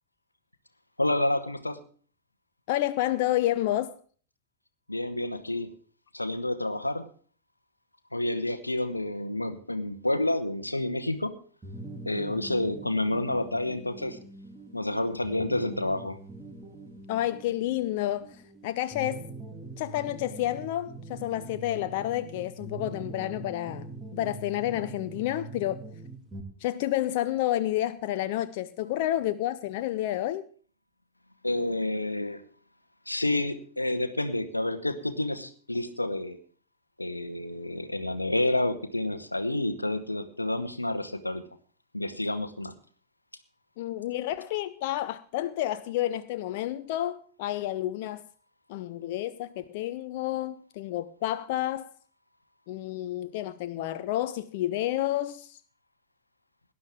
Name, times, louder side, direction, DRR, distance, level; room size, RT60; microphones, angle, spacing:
voice 1, 1.0-1.8 4.9-5.7 6.1-7.1 8.1-11.3 12.1-14.2 14.7-16.2 31.4-32.4 33.1-36.4 37.0-41.4 41.9-42.7, left 1 dB, 85° left, 1.0 m, -29 dB
voice 2, 2.7-3.9 17.1-19.3 19.8-25.8 26.6-30.5 43.8-48.2 48.7-51.9 52.7-55.6, left 14 dB, 50° left, 0.5 m, -30 dB
sound 1, 11.6-26.4, right 2 dB, 20° right, 2.4 m, -43 dB
18.0 x 11.0 x 3.6 m
figure-of-eight pair, 90°, 0 cm